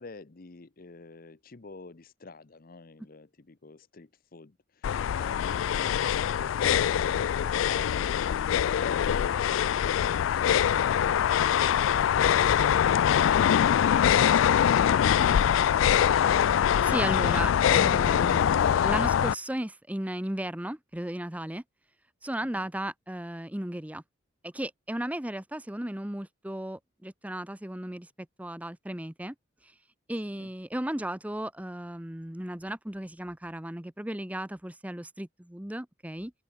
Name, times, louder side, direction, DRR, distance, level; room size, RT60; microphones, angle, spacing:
voice 1, 0.0-16.1 22.4-22.7 30.3-30.5, left 3 dB, 45° left, 0.8 m, -48 dB
sound 1, 4.8-19.3, left 9 dB, 80° left, 0.3 m, -23 dB
voice 2, 16.5-21.6 22.2-24.0 24.4-28.1 28.4-29.3 30.1-36.3, right 1 dB, 5° right, 0.8 m, -35 dB
open air
head